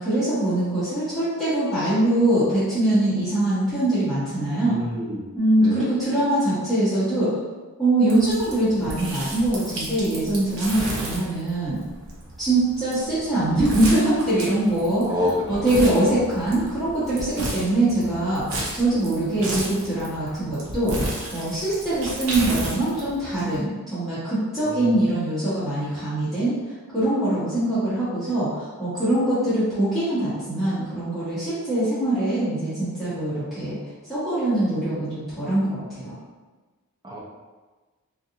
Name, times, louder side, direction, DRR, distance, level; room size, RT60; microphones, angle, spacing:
voice 1, 0.0-4.8 5.3-7.3 7.8-11.8 12.4-15.0 15.5-18.4 18.7-20.9 21.3-33.8 34.1-36.1, right 1 dB, ahead, -16 dB, 1.1 m, -23 dB
voice 2, 4.7-5.2 5.6-5.9 15.0-15.8 24.6-25.1 37.0-37.2, left 1 dB, 20° right, -5 dB, 0.5 m, -28 dB
sound 1, 8.1-23.6, right 1 dB, 60° right, 0.6 m, -33 dB
2.5 x 2.5 x 2.7 m, 1.3 s
head